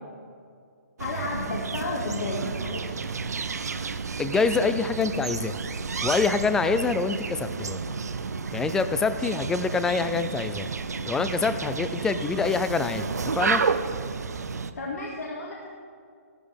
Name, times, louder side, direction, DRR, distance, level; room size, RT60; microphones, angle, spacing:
voice 1, 1.0-3.1 14.8-15.7, left 2 dB, 85° left, -4 dB, 2.1 m, -33 dB
sound 1, 1.0-14.7, right 5 dB, 90° right, 0.7 m, -31 dB
voice 2, 4.2-5.6 6.0-7.8 8.5-10.7 11.1-13.6, left 4 dB, 5° left, 11 dB, 0.4 m, -26 dB
15.0 x 12.5 x 3.5 m, 2.2 s
hypercardioid pair, 150°, 8 cm